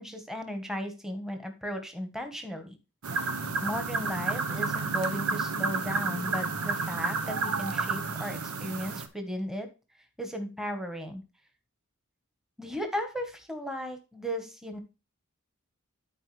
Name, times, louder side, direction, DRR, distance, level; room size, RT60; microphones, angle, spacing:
voice 1, 0.0-2.8 3.1-3.3 3.6-9.7 10.2-11.2 12.6-14.8, equal, ahead, 6 dB, 1.3 m, -36 dB
sound 1, 3.0-9.1, right 4 dB, 90° right, 1.1 m, -31 dB
14.0 x 4.6 x 3.3 m, 0.29 s
head